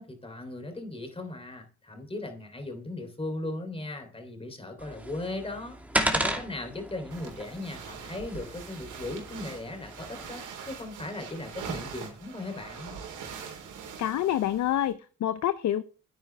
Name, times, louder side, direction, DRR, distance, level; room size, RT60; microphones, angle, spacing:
voice 1, 0.0-5.8 6.1-13.0, left 2 dB, 20° left, 5 dB, 3.1 m, -38 dB
sound 1, 4.8-10.3, right 1 dB, 5° right, 2.5 m, -34 dB
sound 2, 7.1-14.9, right 6 dB, 85° right, 3.7 m, -43 dB
voice 2, 14.0-15.8, left 11 dB, 65° left, 13 dB, 0.7 m, -27 dB
10.0 x 9.1 x 3.4 m, 0.38 s
cardioid pair, 90°, 30 cm